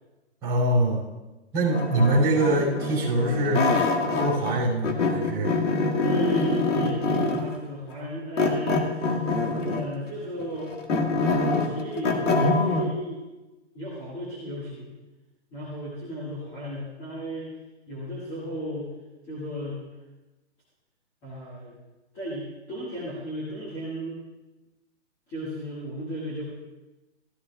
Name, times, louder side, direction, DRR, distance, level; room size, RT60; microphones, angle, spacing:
voice 1, 0.4-1.1 1.5-3.8 4.1-5.5, right 1 dB, 10° right, -8 dB, 2.9 m, -24 dB
sound 1, 1.7-4.6 4.8-7.5 8.4-9.9 10.4-12.9, left 3 dB, 80° left, 1.7 m, -25 dB
voice 2, 6.0-9.3 9.6-10.8 11.1-13.2 13.7-14.9 15.5-17.5 17.9-18.9 19.3-19.8 21.2-21.7 22.1-24.2 25.3-26.4, equal, 15° left, -7 dB, 1.8 m, -34 dB
14.5 x 13.5 x 2.4 m, 1.1 s
hypercardioid pair, 170°, 36 cm